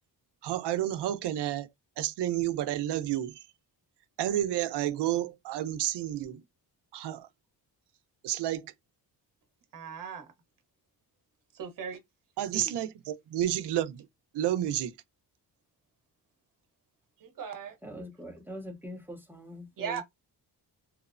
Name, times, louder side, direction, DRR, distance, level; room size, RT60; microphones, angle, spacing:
voice 1, 0.4-1.7 2.0-3.4 4.2-6.4 6.9-7.3 8.2-8.7 12.4-14.1 14.3-14.9, right 12 dB, 75° right, 0.6 m, -30 dB
voice 2, 9.7-10.3 11.5-12.0 12.5-12.7 17.2-17.7 19.8-20.0, right 7 dB, 50° right, 0.9 m, -38 dB
voice 3, 17.8-20.0, equal, 5° right, 0.7 m, -43 dB
2.9 x 2.0 x 2.4 m
cardioid pair, 120°, 41 cm